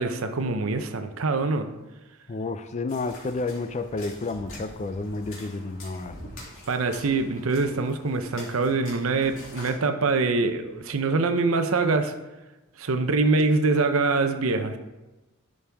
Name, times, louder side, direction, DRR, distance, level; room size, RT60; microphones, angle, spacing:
voice 1, 0.0-1.7 6.7-12.1 12.8-14.8, right 3 dB, 80° right, 8 dB, 0.7 m, -24 dB
voice 2, 2.3-6.2, left 3 dB, 35° left, 11 dB, 0.4 m, -31 dB
sound 1, 2.9-9.7, left 1 dB, 65° left, 2.6 m, -45 dB
11.0 x 5.4 x 3.5 m, 1.1 s
head